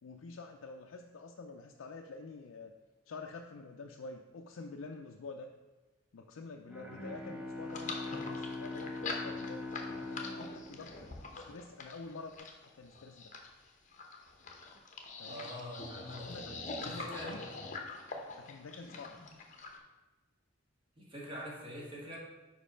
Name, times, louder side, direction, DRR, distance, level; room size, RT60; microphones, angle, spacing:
voice 1, 0.0-2.7 3.1-5.5 6.1-9.7 10.1-13.3 15.2-15.4 16.3-17.4 18.4-19.2, left 3 dB, 85° left, 2 dB, 0.4 m, -48 dB
Bowed string instrument, 6.7-11.6, left 2 dB, 5° right, 0.8 m, -42 dB
sound 1, 7.7-19.8, left 3 dB, 40° left, 0.8 m, -44 dB
voice 2, 15.2-17.4 21.0-22.2, equal, 25° right, -4 dB, 1.8 m, -44 dB
5.1 x 4.6 x 5.5 m, 1.2 s
head